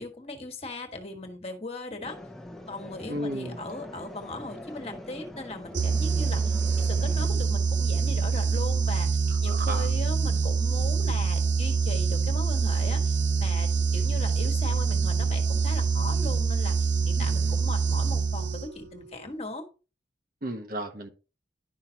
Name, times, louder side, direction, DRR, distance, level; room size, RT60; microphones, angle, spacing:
voice 1, 0.0-2.2 2.7-16.8 17.1-19.6, left 2 dB, 35° left, 1.5 m, -38 dB
sound 1, 2.0-7.3, left 1 dB, ahead, 0.9 m, -43 dB
voice 2, 3.1-3.6 9.4-9.9 17.2-17.6 20.4-21.1, right 1 dB, 55° right, 1.2 m, -34 dB
sound 2, 5.7-18.9, right 5 dB, 85° right, 0.6 m, -25 dB
11.0 x 5.7 x 2.9 m
head